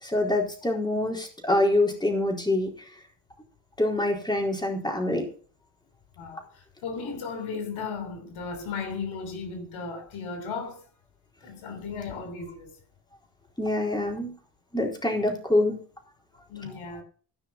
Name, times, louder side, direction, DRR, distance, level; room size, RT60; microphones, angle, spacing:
voice 1, 0.0-2.7 3.8-5.3 13.6-14.3 14.7-15.8 16.6-16.8, left 1 dB, 10° left, 4.1 m, -25 dB
voice 2, 0.7-1.1 6.2-10.8 11.4-12.7 16.5-17.0, left 5 dB, 80° left, 3.5 m, -36 dB
15.5 x 5.7 x 7.4 m
cardioid pair, 100°, 46 cm